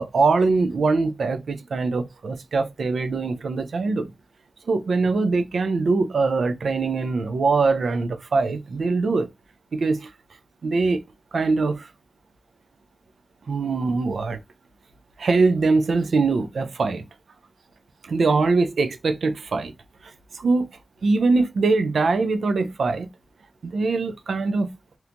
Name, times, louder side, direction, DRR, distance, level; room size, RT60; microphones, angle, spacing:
voice 1, 0.0-4.1 4.7-9.3 9.7-10.1 10.6-11.0 11.3-11.9 13.5-14.4 15.2-17.0 18.0-19.7 20.3-20.7 21.0-23.1 23.6-24.7, right 3 dB, 85° right, 0.3 m, -22 dB
2.8 x 2.2 x 2.5 m
cardioid pair, 40°, 0 cm